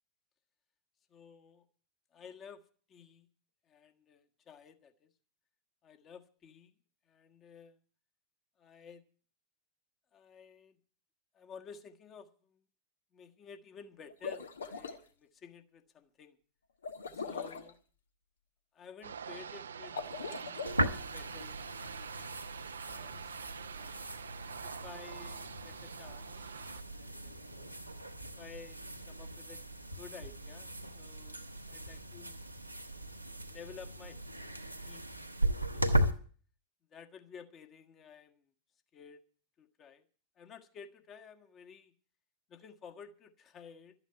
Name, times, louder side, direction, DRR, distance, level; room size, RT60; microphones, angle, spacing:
voice 1, 1.1-1.6 2.1-2.6 2.9-3.3 3.7-5.1 5.8-6.7 7.1-7.8 8.6-9.0 10.1-10.8 11.3-12.6 13.1-16.4 17.1-17.8 18.7-20.8 21.1-21.6 21.8-22.3 22.8-23.3 23.7-23.9 24.6-26.5 26.9-27.5 28.4-28.8 29.1-29.6 29.9-32.4 33.2-34.2 34.8-35.1 35.7-36.0 36.9-38.4 38.9-39.2 39.6-40.0 40.4-41.9 42.5-43.9, left 6 dB, 30° left, 6 dB, 1.5 m, -53 dB
sound 1, 14.1-15.0 16.8-17.7 19.8-20.9, left 5 dB, 70° left, 1.2 m, -41 dB
sound 2, 19.0-26.8, right 7 dB, 70° right, 0.6 m, -46 dB
sound 3, 20.7-36.1, right 1 dB, 90° right, 1.2 m, -37 dB
12.5 x 9.0 x 8.9 m, 0.43 s
figure-of-eight pair, 90°, 0 cm